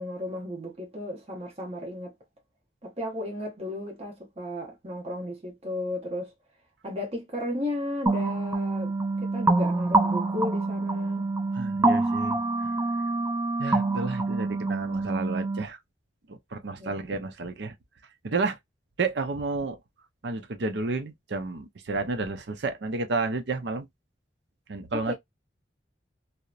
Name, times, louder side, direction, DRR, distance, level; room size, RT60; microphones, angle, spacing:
voice 1, 0.0-2.1 2.8-6.3 6.8-11.3 16.8-17.1 24.9-25.1, left 1 dB, 35° right, 0.9 m, -34 dB
MS sine deep, 8.1-15.6, right 2 dB, 15° right, 0.4 m, -26 dB
voice 2, 11.5-12.7 13.6-15.8 16.3-17.7 18.2-18.6 19.0-19.8 20.2-23.9 24.7-25.1, right 3 dB, 70° right, 0.6 m, -31 dB
2.8 x 2.0 x 2.4 m
head